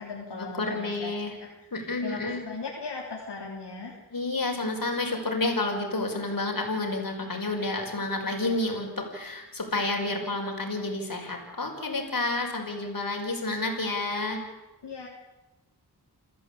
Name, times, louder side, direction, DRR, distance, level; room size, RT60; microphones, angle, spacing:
voice 1, 0.0-1.1 1.4-4.0 14.8-15.1, left 4 dB, 80° left, -2 dB, 3.8 m, -38 dB
voice 2, 0.6-1.3 1.7-2.4 4.1-14.4, left 2 dB, 55° left, 2 dB, 5.9 m, -30 dB
28.0 x 14.0 x 8.6 m, 1.0 s
wide cardioid pair, 70°, 40 cm